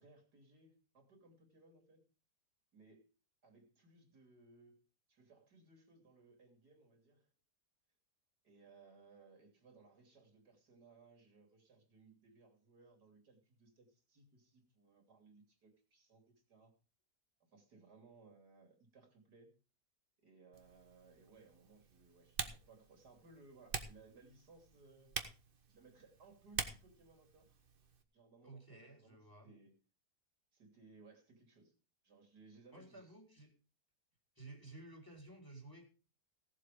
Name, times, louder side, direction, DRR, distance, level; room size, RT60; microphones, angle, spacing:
voice 1, 0.0-2.0 2.7-3.1 3.4-4.8 5.1-7.3 8.4-16.7 17.5-19.5 20.2-25.2 25.7-27.6 28.1-29.2 29.4-29.7 30.5-31.7 32.0-33.2, right 3 dB, 70° right, 3 dB, 3.6 m, -63 dB
Typing, 20.5-28.0, right 5 dB, 35° right, 1.2 m, -47 dB
voice 2, 28.4-29.5 32.7-33.5 34.3-35.8, right 2 dB, 10° left, 3 dB, 3.3 m, -54 dB
17.0 x 7.7 x 5.0 m, 0.35 s
omnidirectional pair, 1.8 m